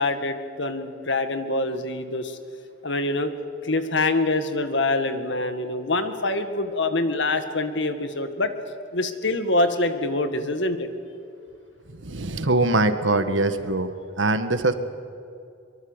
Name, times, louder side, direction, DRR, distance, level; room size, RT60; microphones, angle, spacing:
voice 1, 0.0-2.4 2.8-3.3 3.6-8.5 8.9-10.9, left 2 dB, 65° left, 9 dB, 1.9 m, -25 dB
voice 2, 12.0-13.9 14.2-14.7, right 2 dB, 75° right, 9 dB, 1.7 m, -22 dB
23.5 x 23.5 x 8.1 m, 2.6 s
head